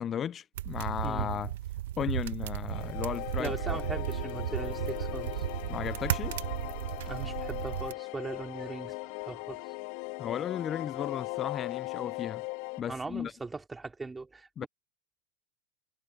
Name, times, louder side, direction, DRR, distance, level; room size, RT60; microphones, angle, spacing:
voice 1, 0.0-1.5 2.0-3.5 5.7-6.4 10.2-12.4 12.8-13.3 14.6-14.7, left 9 dB, 30° left, 0.6 m, -35 dB
sound 1, 0.6-7.9, right 13 dB, 75° right, 1.4 m, -34 dB
sound 2, 2.7-12.8, left 26 dB, 60° left, 2.0 m, -39 dB
voice 2, 3.4-5.5 7.1-9.7 12.9-14.7, right 3 dB, 15° right, 4.0 m, -40 dB
hypercardioid pair, 95°, 0 cm